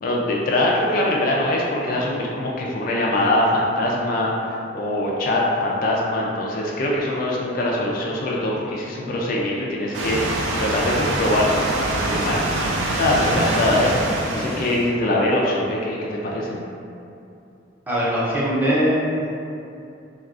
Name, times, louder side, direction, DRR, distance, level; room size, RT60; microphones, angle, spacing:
voice 1, 0.0-4.3 4.7-11.5 11.9-12.4 12.9-13.9 14.3-16.6, left 1 dB, 50° left, -3 dB, 0.3 m, -22 dB
sound 1, 9.9-14.9, right 1 dB, 80° right, 0.4 m, -24 dB
voice 2, 17.9-19.0, equal, 10° right, -8 dB, 0.5 m, -22 dB
3.5 x 2.3 x 2.4 m, 2.6 s
head